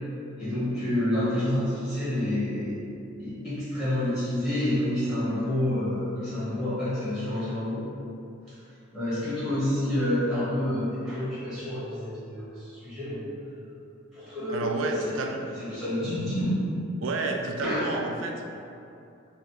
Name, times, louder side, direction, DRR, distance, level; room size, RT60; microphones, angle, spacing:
voice 1, 0.4-2.8 3.2-7.8 8.9-13.3 14.1-15.2 15.6-16.6 17.6-17.8, left 1 dB, ahead, -13 dB, 1.3 m, -28 dB
voice 2, 14.5-15.5 17.0-18.5, right 3 dB, 85° right, 2 dB, 0.4 m, -31 dB
3.4 x 2.5 x 4.5 m, 2.7 s
head